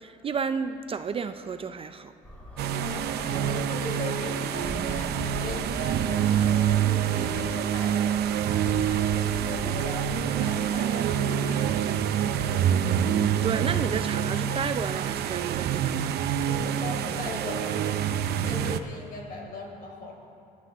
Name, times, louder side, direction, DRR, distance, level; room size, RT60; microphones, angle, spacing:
voice 1, 0.0-2.1 13.0-16.1, right 6 dB, 35° right, 10 dB, 0.5 m, -32 dB
sound 1, 2.2-10.2, equal, 10° left, 2.4 m, -41 dB
sound 2, 2.6-18.8, right 9 dB, 70° right, 0.7 m, -26 dB
voice 2, 2.7-12.7 16.4-18.2 18.4-20.2, left 3 dB, 55° left, -1 dB, 4.2 m, -39 dB
23.0 x 12.0 x 3.6 m, 2.5 s
cardioid pair, 110°, 17 cm